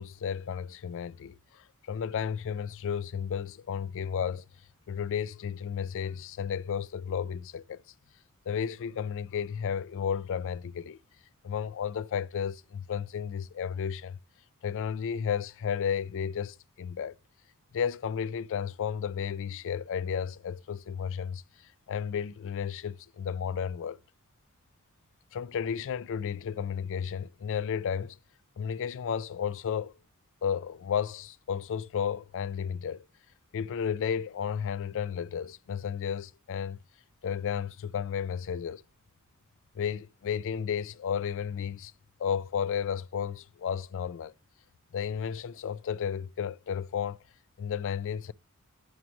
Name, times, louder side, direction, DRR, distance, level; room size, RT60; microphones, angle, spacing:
voice 1, 0.0-4.5 4.9-7.8 8.5-11.0 11.4-14.2 14.6-17.1 17.7-21.4 21.9-24.0 25.3-28.2 28.6-29.9 30.4-33.0 33.5-36.8 37.2-38.8 39.8-41.9 42.2-44.3 44.9-47.2 47.6-48.3, left 7 dB, 60° left, 0.4 m, -33 dB
11.0 x 6.1 x 3.0 m
head